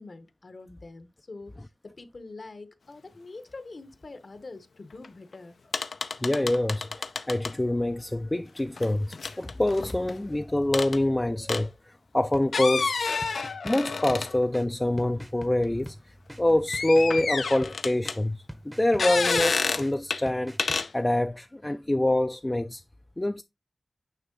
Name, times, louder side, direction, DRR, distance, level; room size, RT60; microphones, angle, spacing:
voice 1, 0.0-5.6, left 3 dB, 55° left, 0.9 m, -45 dB
sound 1, 5.0-5.1 5.3-5.4 5.7-7.5 8.8-10.1 10.7-11.0 11.5-11.6 12.4-14.6 15.0-15.1 16.7-18.2 19.0-19.9 20.1-20.2 20.6-20.9, left 4 dB, 85° left, 0.5 m, -29 dB
voice 2, 6.2-13.0 13.6-16.0 16.4-20.6 20.9-22.8 23.2-23.4, left 1 dB, 20° left, 0.4 m, -26 dB
sound 2, 12.3-20.8, equal, 5° right, 0.7 m, -45 dB
9.2 x 3.1 x 3.8 m
wide cardioid pair, 90°, 0 cm